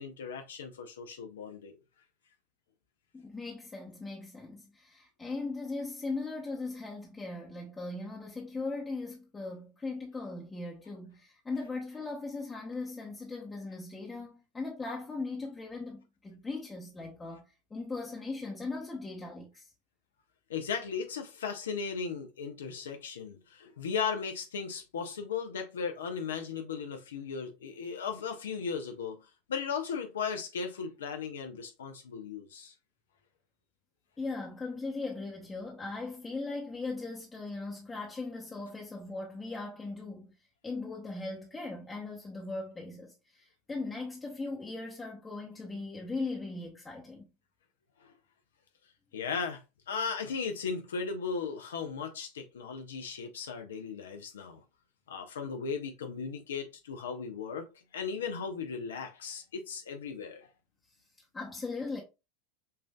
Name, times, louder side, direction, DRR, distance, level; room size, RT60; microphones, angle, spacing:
voice 1, 0.0-1.7 20.5-29.2 29.5-32.7 48.0-48.1 49.1-49.6 49.9-54.6 55.1-57.7 57.9-60.5, left 6 dB, 80° left, 0.5 m, -36 dB
voice 2, 3.1-19.7 34.2-40.3 40.6-47.3 61.3-62.0, left 3 dB, 15° left, 0.8 m, -39 dB
5.4 x 2.5 x 2.2 m
hypercardioid pair, 85°, 0 cm